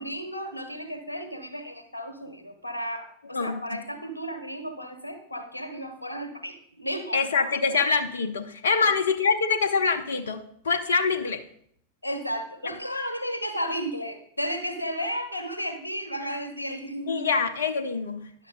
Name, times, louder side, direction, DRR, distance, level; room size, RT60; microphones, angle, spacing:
voice 1, 0.0-7.8 8.8-8.9 12.0-17.3 18.4-18.5, equal, 85° left, 7 dB, 1.0 m, -34 dB
voice 2, 3.3-3.8 7.1-11.4 17.1-18.3, left 5 dB, 65° left, 9 dB, 0.6 m, -25 dB
10.0 x 6.6 x 3.9 m, 0.68 s
figure-of-eight pair, 90°, 0 cm